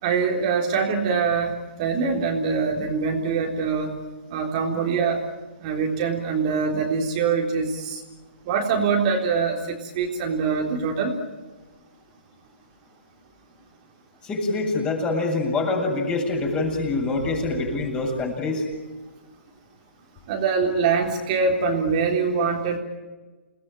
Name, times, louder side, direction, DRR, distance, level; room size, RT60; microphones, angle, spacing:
voice 1, 0.0-4.0 4.3-5.2 5.6-8.0 8.5-11.2 20.3-22.8, right 5 dB, 35° right, 1 dB, 3.9 m, -24 dB
voice 2, 14.2-18.7, left 3 dB, 15° left, 1 dB, 7.7 m, -25 dB
29.0 x 19.5 x 9.2 m, 1.2 s
hypercardioid pair, 140°, 7 cm